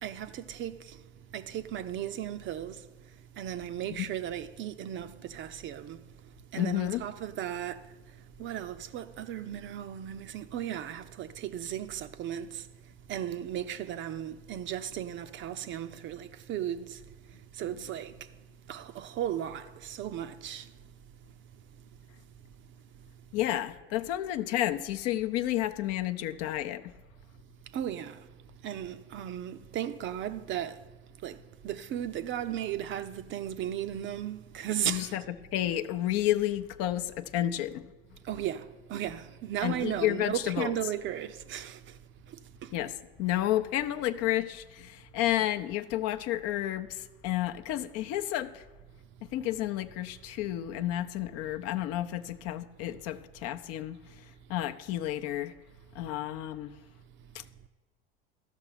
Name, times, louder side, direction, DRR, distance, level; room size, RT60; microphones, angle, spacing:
voice 1, 0.0-1.0 1.3-2.9 3.4-6.0 6.5-7.9 8.4-12.7 13.1-17.0 17.5-18.3 18.7-20.7 27.7-28.3 28.6-30.8 31.2-31.4 31.6-35.2 38.2-42.0 42.3-42.7, right 10 dB, 40° right, 0.6 m, -36 dB
voice 2, 6.6-7.0 17.6-17.9 23.3-26.9 34.8-37.9 39.6-40.9 42.7-48.6 49.3-54.0 54.5-55.5 55.9-56.8 57.3-57.4, left 13 dB, 55° left, 0.6 m, -31 dB
13.0 x 6.0 x 5.7 m
hypercardioid pair, 85°, 30 cm